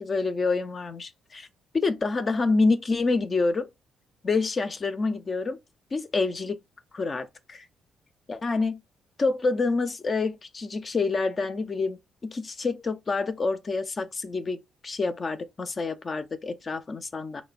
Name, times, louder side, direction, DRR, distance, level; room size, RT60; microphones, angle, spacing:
voice 1, 0.0-1.5 1.7-3.7 4.2-5.6 5.9-6.6 6.9-7.7 8.3-8.8 9.2-17.4, left 3 dB, 35° left, 0.4 m, -27 dB
3.0 x 2.0 x 2.4 m
cardioid pair, 90°, 0 cm